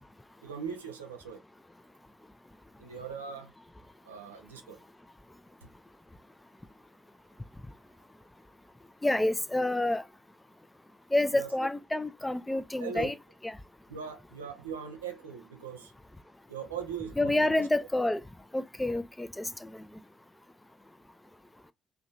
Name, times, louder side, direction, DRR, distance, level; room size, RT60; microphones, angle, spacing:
voice 1, 0.4-1.4 2.8-3.5 4.0-4.8 5.6-5.7 11.3-11.7 12.8-13.1 13.9-15.9 16.5-17.7, right 7 dB, 80° right, 0.4 m, -40 dB
voice 2, 9.0-10.0 11.1-13.1 17.2-18.2 18.5-19.7, left 1 dB, 10° left, 0.3 m, -28 dB
2.6 x 2.2 x 2.6 m
figure-of-eight pair, 40°, 0 cm